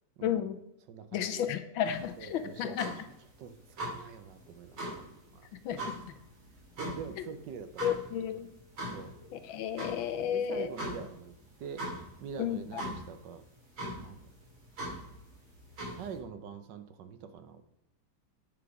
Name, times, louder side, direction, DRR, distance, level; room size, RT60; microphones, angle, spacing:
voice 1, 0.2-0.6 1.1-2.9 5.6-5.9 7.8-8.5 9.3-10.7 12.4-12.8, left 9 dB, 80° left, 10 dB, 1.5 m, -32 dB
voice 2, 0.9-1.5 2.2-3.1 3.4-5.9 6.8-8.5 8.9-9.1 10.2-11.9 12.2-13.4 14.0-14.2 15.8-17.6, right 6 dB, 70° right, 9 dB, 1.4 m, -45 dB
sound 1, 1.8-16.2, right 1 dB, 90° right, 4.1 m, -42 dB
9.5 x 5.9 x 4.9 m, 0.80 s
omnidirectional pair, 2.2 m